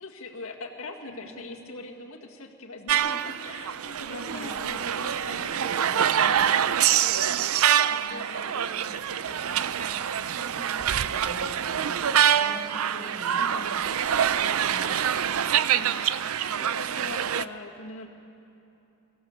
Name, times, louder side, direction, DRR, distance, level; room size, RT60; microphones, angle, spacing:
voice 1, 0.0-7.3 7.9-9.6 13.4-14.0 15.7-16.1 16.3-18.1, left 2 dB, 70° left, 2 dB, 2.0 m, -42 dB
sound 1, 2.9-17.4, right 9 dB, 75° right, 0.5 m, -25 dB
voice 2, 3.9-4.5 7.9-8.5 9.7-10.0 10.2-13.4 14.4-15.1, equal, 50° right, -5 dB, 6.6 m, -44 dB
23.5 x 16.0 x 7.3 m, 3.0 s
head